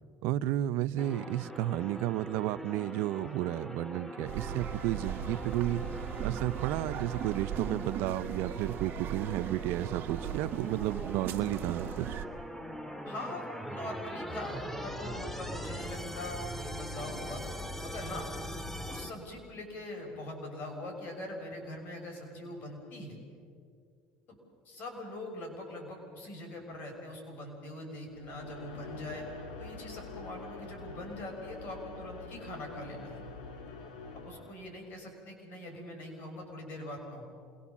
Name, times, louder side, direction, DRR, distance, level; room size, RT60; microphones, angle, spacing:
voice 1, 0.2-5.8 6.2-12.1, right 14 dB, 75° right, 16 dB, 0.6 m, -32 dB
sound 1, 1.0-19.1, equal, 5° left, 1.9 m, -42 dB
sound 2, 4.3-12.3, right 9 dB, 55° right, 1.8 m, -38 dB
voice 2, 13.0-17.4 17.8-18.3 18.9-23.2 24.3-24.4 24.6-29.3 29.6-33.2 34.2-37.2, left 1 dB, 50° left, 2 dB, 6.6 m, -42 dB
sound 3, 28.1-35.0, left 3 dB, 90° left, 3.3 m, -46 dB
27.5 x 22.0 x 7.2 m, 2.3 s
supercardioid pair, 95°, 4 cm